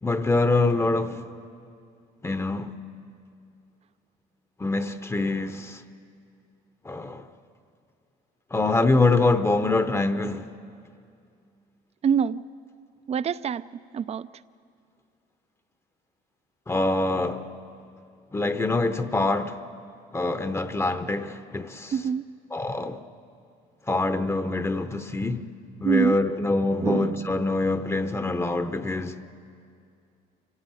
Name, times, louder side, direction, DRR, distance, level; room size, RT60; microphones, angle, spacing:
voice 1, 0.0-1.2 2.2-2.7 4.6-5.8 6.8-7.3 8.5-10.5 16.7-17.5 18.3-19.6 20.1-21.9 22.5-23.0 23.9-25.5 25.8-29.2, left 2 dB, 15° left, 0.8 m, -25 dB
voice 2, 12.0-12.4 13.1-13.6 13.9-14.3 21.9-22.2 25.8-26.2 26.8-27.3, right 7 dB, 40° right, 0.5 m, -25 dB
25.0 x 15.5 x 9.1 m
cardioid pair, 110°, 17 cm